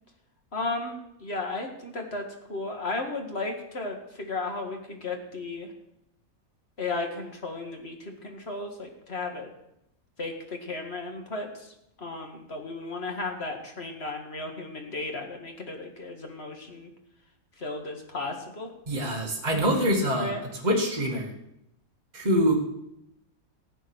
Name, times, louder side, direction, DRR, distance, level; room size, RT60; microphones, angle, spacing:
voice 1, 0.5-5.7 6.8-9.5 10.2-16.9 17.6-18.7 20.1-20.4, left 3 dB, 45° left, 3 dB, 2.2 m, -34 dB
voice 2, 18.9-20.3 20.6-21.3 22.1-22.5, equal, 30° right, -1 dB, 2.2 m, -24 dB
15.5 x 8.0 x 6.3 m, 0.82 s
omnidirectional pair, 1.5 m